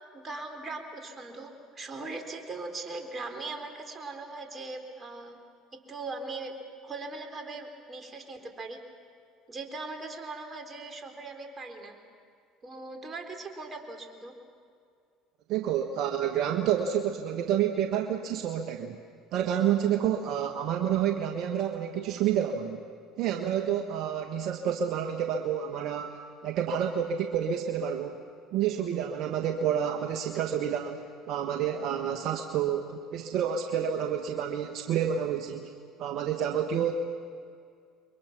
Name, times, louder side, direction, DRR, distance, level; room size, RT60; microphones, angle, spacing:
voice 1, 0.1-5.4 5.9-6.5 6.8-8.8 9.5-12.0 12.6-14.3, right 3 dB, 30° right, 4 dB, 4.1 m, -40 dB
voice 2, 15.5-19.0 19.3-22.8 23.2-26.1 26.4-28.2 28.5-35.7 36.0-36.9, right 9 dB, 65° right, 4 dB, 1.4 m, -29 dB
29.5 x 23.0 x 6.1 m, 2.2 s
hypercardioid pair, 75°, 0 cm